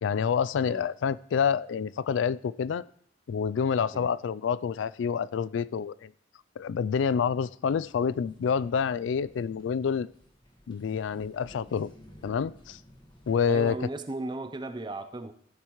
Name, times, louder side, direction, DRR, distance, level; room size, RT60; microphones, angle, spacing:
voice 1, 0.0-2.8 3.3-6.1 6.6-10.1 10.7-11.9 12.2-12.8 13.3-13.8, left 6 dB, 85° left, 18 dB, 0.3 m, -28 dB
sound 1, 7.8-13.8, equal, 25° left, 1.5 m, -55 dB
voice 2, 13.5-15.3, right 2 dB, 25° right, 10 dB, 0.6 m, -36 dB
15.0 x 8.3 x 3.1 m, 0.66 s
head